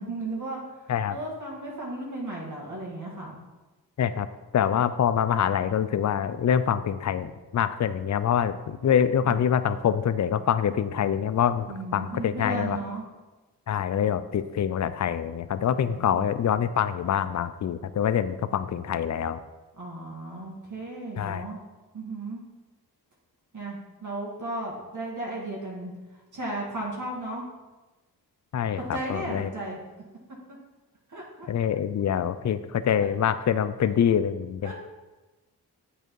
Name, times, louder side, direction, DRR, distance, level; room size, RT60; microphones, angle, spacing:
voice 1, 0.0-3.4 8.8-9.3 11.7-13.0 15.6-16.2 19.8-21.6 21.9-22.4 23.5-25.9 26.3-27.5 28.8-29.8 30.5-30.6 31.1-31.5 33.0-33.1 34.6-34.7, right 2 dB, 50° right, -3 dB, 1.9 m, -35 dB
voice 2, 4.5-12.8 13.7-19.4 21.2-21.4 28.5-29.5 31.5-34.7, left 8 dB, 45° left, 13 dB, 0.5 m, -25 dB
7.6 x 5.0 x 4.6 m, 1.2 s
cardioid pair, 55°, 39 cm